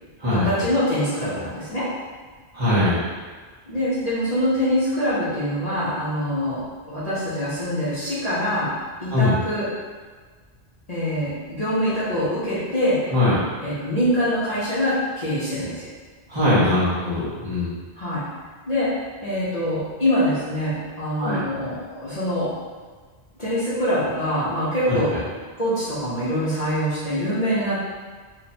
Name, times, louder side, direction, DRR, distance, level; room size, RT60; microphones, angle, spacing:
voice 1, 0.3-1.9 3.7-8.7 9.0-9.7 10.9-13.1 13.6-15.8 18.0-18.2 18.7-22.5 23.4-25.2 25.6-27.8, equal, 40° left, -11 dB, 1.0 m, -24 dB
voice 2, 2.5-3.0 9.1-9.3 13.1-13.4 16.3-17.7 21.2-21.4 24.9-25.0, left 1 dB, 25° right, -12 dB, 1.2 m, -21 dB
3.0 x 2.6 x 4.2 m, 1.5 s
omnidirectional pair, 1.1 m